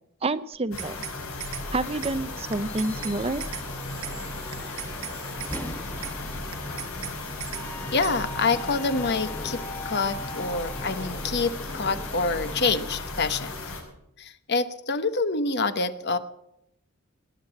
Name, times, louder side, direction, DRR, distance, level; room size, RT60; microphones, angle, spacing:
voice 1, 0.2-1.0 1.7-3.5, right 2 dB, 25° right, 14 dB, 0.6 m, -28 dB
sound 1, 0.5-1.2 1.4-1.7 2.0-2.2 2.5-3.2 3.4-3.7 4.0-4.2 4.5-5.2 5.4-5.7 6.0-6.2 6.5-7.2 7.4-7.7 8.0-8.2, right 11 dB, 75° right, 1.3 m, -37 dB
sound 2, 0.7-13.8, left 2 dB, 75° left, 5.6 m, -36 dB
sound 3, 1.6-12.8, left 1 dB, 10° left, 1.4 m, -40 dB
voice 2, 7.9-13.5 14.2-16.2, left 4 dB, 50° left, 11 dB, 1.0 m, -26 dB
19.5 x 8.9 x 7.5 m, 0.81 s
head